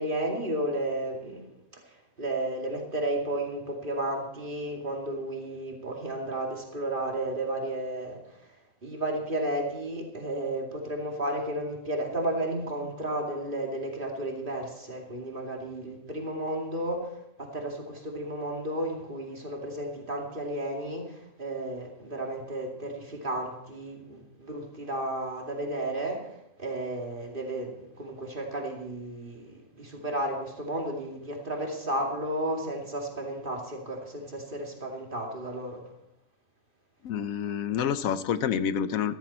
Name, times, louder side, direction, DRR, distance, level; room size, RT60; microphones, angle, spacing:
voice 1, 0.0-1.5 2.2-8.4 8.8-17.1 17.4-26.2 26.6-35.8, right 1 dB, 40° right, 0 dB, 2.6 m, -33 dB
voice 2, 37.0-39.2, left 8 dB, 85° left, 13 dB, 1.1 m, -28 dB
14.0 x 14.0 x 4.3 m, 0.84 s
omnidirectional pair, 1.4 m